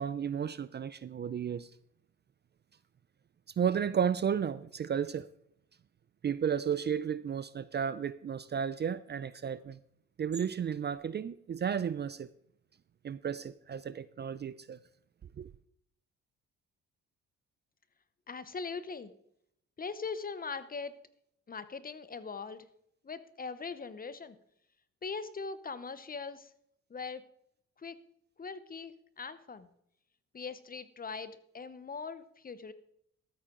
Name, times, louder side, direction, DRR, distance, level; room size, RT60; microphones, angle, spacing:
voice 1, 0.0-1.7 3.6-5.3 6.2-9.8 10.2-12.3 13.0-14.8 15.4-15.5, right 8 dB, 35° right, 0.4 m, -33 dB
voice 2, 18.3-19.1 19.8-21.0 21.5-22.7 23.0-24.4 25.0-26.5 26.9-27.2 27.8-28.0 28.4-29.7 30.3-32.7, left 4 dB, 30° left, 0.9 m, -41 dB
13.5 x 8.5 x 3.8 m
cardioid pair, 90°, 30 cm